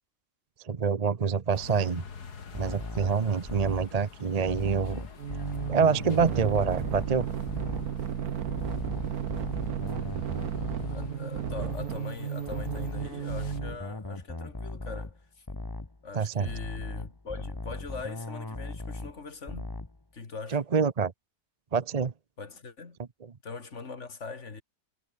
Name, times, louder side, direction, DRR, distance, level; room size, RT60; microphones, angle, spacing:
voice 1, 0.6-2.0 2.5-5.1 5.7-7.3 16.1-16.5 20.5-21.1 21.7-22.1, right 5 dB, 35° right, 0.6 m, -26 dB
sound 1, 1.5-13.6, left 5 dB, 75° left, 2.7 m, -49 dB
sound 2, 2.5-4.0 4.5-7.2 7.5-8.0 8.5-12.0 12.5-15.2 15.5-16.0 16.5-19.2 19.5-20.0, left 2 dB, 15° left, 1.3 m, -38 dB
sound 3, 5.2-13.8, right 8 dB, 65° right, 1.7 m, -34 dB
voice 2, 10.9-15.4 16.0-19.7 20.1-20.6 22.4-23.0 23.4-24.6, left 4 dB, 45° left, 2.5 m, -41 dB
omnidirectional pair, 1.7 m